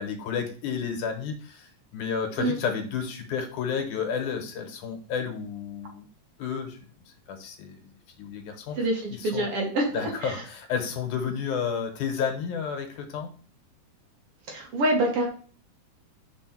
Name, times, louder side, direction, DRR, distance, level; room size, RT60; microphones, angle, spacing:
voice 1, 0.0-6.1 6.4-6.8 7.3-7.9 8.2-8.8 9.1-9.5 9.9-13.3, left 6 dB, 85° left, 5 dB, 2.5 m, -31 dB
voice 2, 8.7-10.4 14.5-15.3, right 1 dB, 55° right, 0 dB, 2.1 m, -26 dB
5.5 x 4.3 x 4.4 m, 0.42 s
omnidirectional pair, 3.4 m